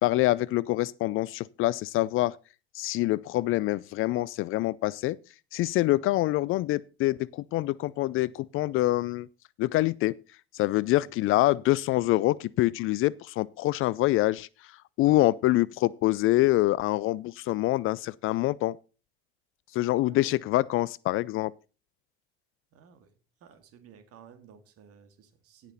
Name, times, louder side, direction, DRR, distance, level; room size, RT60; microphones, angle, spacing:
voice 1, 0.0-2.4 2.7-5.2 5.5-9.3 9.6-10.1 10.5-14.5 15.0-18.8 19.7-21.5, left 17 dB, 45° left, 0.4 m, -25 dB
voice 2, 22.7-23.1 23.4-25.7, right 7 dB, 50° right, 2.1 m, -54 dB
17.5 x 6.0 x 4.0 m
hypercardioid pair, 65°, 29 cm